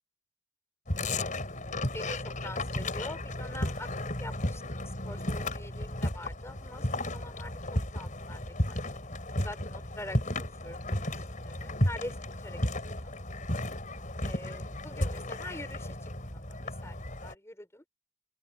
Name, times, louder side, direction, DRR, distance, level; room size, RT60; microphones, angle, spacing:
sound 1, 0.9-17.3, left 1 dB, 40° left, 5.3 m, -34 dB
voice 1, 1.9-3.9 4.2-7.5 7.9-9.2 9.4-12.1 12.4-12.6 12.9-13.1 14.2-16.9 17.2-17.8, left 1 dB, 15° left, 6.7 m, -45 dB
open air
head